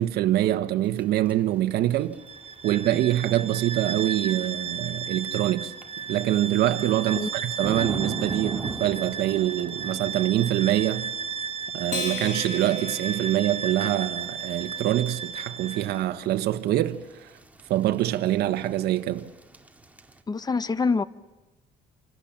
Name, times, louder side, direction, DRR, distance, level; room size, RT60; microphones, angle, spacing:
voice 1, 0.0-2.2 2.6-5.7 6.1-11.1 11.7-17.4 17.7-19.3, right 13 dB, 75° right, 1.1 m, -25 dB
sound 1, 0.8-20.2, right 2 dB, 10° right, 2.0 m, -43 dB
Bowed string instrument, 2.2-16.0, right 6 dB, 35° right, 1.3 m, -34 dB
Acoustic guitar, 11.9-14.5, left 5 dB, 50° left, 3.4 m, -37 dB
voice 2, 20.3-21.0, left 4 dB, 25° left, 0.9 m, -25 dB
28.5 x 25.5 x 7.3 m
cardioid pair, 110°, 17 cm